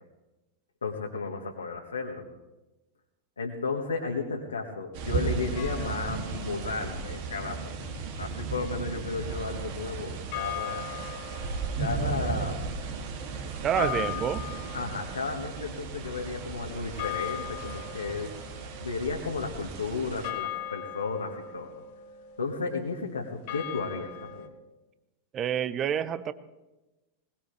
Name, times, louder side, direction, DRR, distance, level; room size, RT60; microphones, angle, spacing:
voice 1, 0.8-2.3 3.4-7.8 8.2-11.0 11.8-12.7 13.8-13.9 14.7-18.4 18.8-21.7 22.4-24.5, left 4 dB, 80° left, -1 dB, 1.7 m, -33 dB
sound 1, 4.9-20.3, right 5 dB, 55° right, 2.7 m, -35 dB
sound 2, 5.6-6.6 10.3-24.5, left 11 dB, 55° left, 1.7 m, -40 dB
voice 2, 13.6-14.4 25.3-26.3, right 9 dB, 30° right, 14 dB, 0.9 m, -28 dB
21.0 x 20.0 x 3.4 m, 1.1 s
figure-of-eight pair, 90°, 0 cm